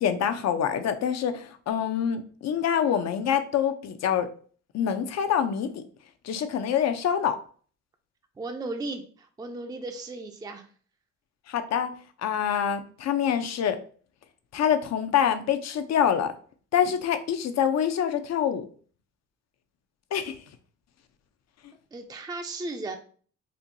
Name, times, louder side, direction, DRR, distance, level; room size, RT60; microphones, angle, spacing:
voice 1, 0.0-4.3 4.7-5.8 6.2-7.4 11.5-11.9 12.2-13.8 14.5-16.3 16.7-18.6 20.1-20.4, left 8 dB, 60° left, 8 dB, 0.6 m, -25 dB
voice 2, 8.4-10.7 21.9-23.0, right 2 dB, 15° right, 5 dB, 0.4 m, -35 dB
4.3 x 2.6 x 2.6 m, 0.44 s
cardioid pair, 90°, 30 cm